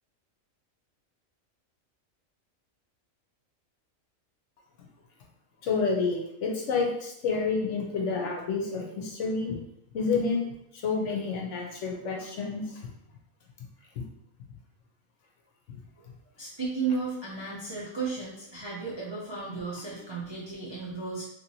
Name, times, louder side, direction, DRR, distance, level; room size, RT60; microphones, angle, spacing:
voice 1, 5.6-9.6 9.9-10.4 10.7-12.8 14.0-14.1, left 4 dB, 65° left, 0 dB, 0.9 m, -29 dB
voice 2, 16.4-21.3, right 4 dB, 35° right, -6 dB, 0.4 m, -34 dB
3.2 x 2.9 x 2.7 m, 0.76 s
omnidirectional pair, 1.4 m